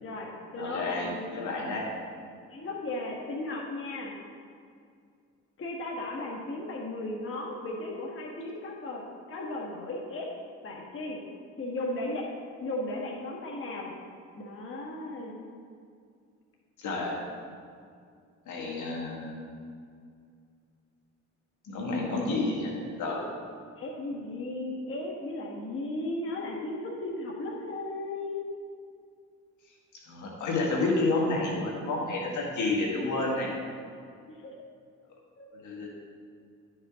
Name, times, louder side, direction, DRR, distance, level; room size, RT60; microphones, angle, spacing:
voice 1, 0.0-1.3 2.5-4.1 5.6-10.3 10.6-11.2 11.6-12.3 12.6-13.9 14.4-15.4 22.0-22.5 23.8-28.4 34.3-34.4 35.4-35.5, left 2 dB, 45° left, -2 dB, 1.4 m, -36 dB
voice 2, 0.6-1.8 16.8-17.2 18.5-19.3 21.6-22.7 23.0-23.3 30.1-33.5 35.5-35.9, left 2 dB, 75° left, -2 dB, 1.8 m, -30 dB
11.5 x 5.3 x 3.6 m, 2.2 s
cardioid pair, 90°, 30 cm